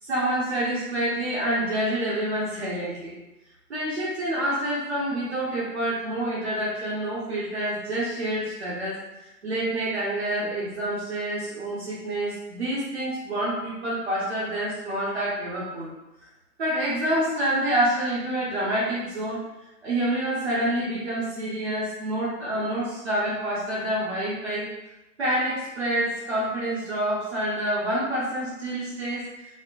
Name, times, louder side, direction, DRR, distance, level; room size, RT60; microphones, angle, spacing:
voice 1, 0.0-3.1 3.7-15.9 16.6-19.4 19.8-24.7 25.2-29.3, right 1 dB, 45° right, -8 dB, 0.8 m, -27 dB
4.2 x 2.1 x 2.4 m, 0.97 s
figure-of-eight pair, 135°, 48 cm